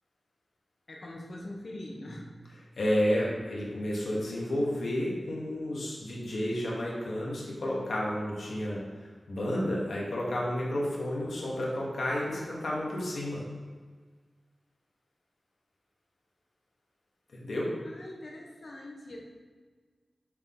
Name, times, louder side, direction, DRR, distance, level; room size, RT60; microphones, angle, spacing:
voice 1, 0.9-2.4 17.8-19.2, left 1 dB, 65° left, -1 dB, 1.1 m, -43 dB
voice 2, 2.8-13.5 17.3-17.8, left 1 dB, 85° left, -3 dB, 1.4 m, -31 dB
6.6 x 3.8 x 3.7 m, 1.5 s
wide cardioid pair, 60°, 0 cm